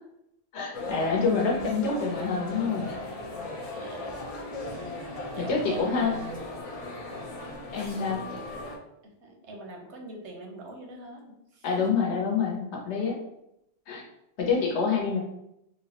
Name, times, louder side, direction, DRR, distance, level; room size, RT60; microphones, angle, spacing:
voice 1, 0.5-2.9 5.4-6.1 7.7-8.2 11.6-13.2 13.9-14.0 14.4-15.2, left 5 dB, 80° left, 0 dB, 1.0 m, -27 dB
sound 1, 0.7-8.8, left 2 dB, 55° left, 0.4 m, -37 dB
voice 2, 3.7-4.2 5.3-6.5 9.0-11.3 11.5-11.9, right 2 dB, 80° right, 1 dB, 0.9 m, -42 dB
3.1 x 2.0 x 2.8 m, 0.83 s
omnidirectional pair, 1.2 m